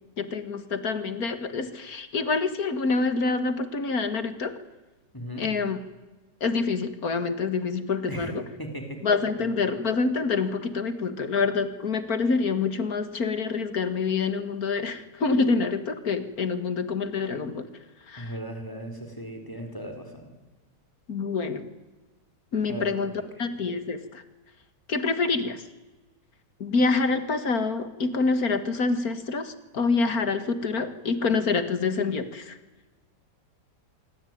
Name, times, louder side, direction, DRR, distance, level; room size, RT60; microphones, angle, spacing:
voice 1, 0.2-4.5 5.4-5.8 6.4-8.4 9.0-17.7 18.1-18.3 21.1-21.7 22.5-23.1 23.4-24.2 24.9-25.6 26.6-32.6, left 4 dB, 55° left, 11 dB, 2.2 m, -26 dB
voice 2, 5.1-5.4 8.1-9.0 9.4-9.5 18.2-20.3 22.7-23.2, equal, 10° left, 5 dB, 4.7 m, -37 dB
26.0 x 24.0 x 9.4 m, 1.2 s
omnidirectional pair, 1.9 m